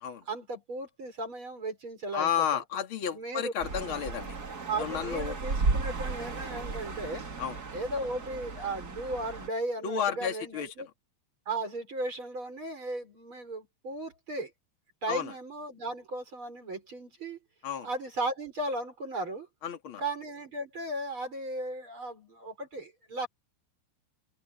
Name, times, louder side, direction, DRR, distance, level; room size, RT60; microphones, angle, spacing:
voice 1, 0.3-2.3 3.1-3.5 4.7-7.3 7.7-10.9 11.5-14.5 15.0-17.4 17.8-19.5 20.0-23.3, right 2 dB, 25° right, 5.7 m, -36 dB
voice 2, 2.1-4.4 4.8-5.4 7.4-7.6 9.8-10.7 15.1-15.3 17.6-17.9 19.6-20.0, left 8 dB, 45° left, 1.7 m, -32 dB
sound 1, 3.6-9.5, right 3 dB, 75° right, 0.9 m, -34 dB
omnidirectional pair, 5.7 m